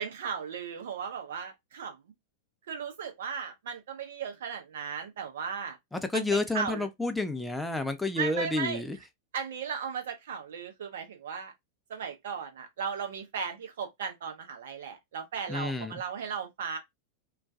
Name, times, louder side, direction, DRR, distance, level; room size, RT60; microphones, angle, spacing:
voice 1, 0.0-2.0 2.7-5.8 6.1-6.9 8.2-8.8 9.3-11.5 11.9-16.8, right 6 dB, 60° right, 0.7 m, -36 dB
voice 2, 5.9-9.0 15.5-16.0, left 2 dB, 5° left, 0.5 m, -30 dB
2.4 x 2.2 x 2.5 m
figure-of-eight pair, 90°, 0 cm